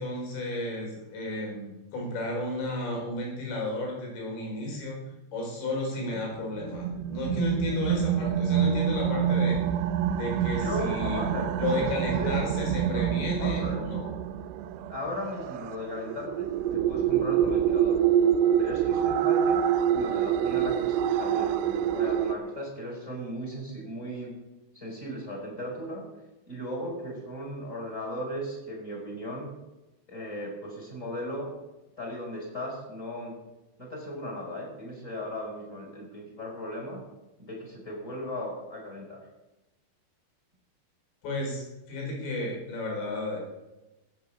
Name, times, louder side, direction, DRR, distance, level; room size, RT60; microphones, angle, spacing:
voice 1, 0.0-5.0 5.3-9.6 10.1-11.2 11.6-14.1 41.2-43.4, left 2 dB, 90° left, -1 dB, 6.7 m, -33 dB
sound 1, 6.6-22.4, right 9 dB, 85° right, 2.9 m, -26 dB
voice 2, 10.6-12.3 12.9-13.8 14.9-18.0 18.6-24.3 24.7-26.0 26.5-29.5 30.1-31.5 32.0-33.3 33.8-37.0 37.4-39.2, left 1 dB, 15° left, -1 dB, 4.6 m, -37 dB
13.5 x 8.6 x 8.0 m, 1.0 s
omnidirectional pair, 5.0 m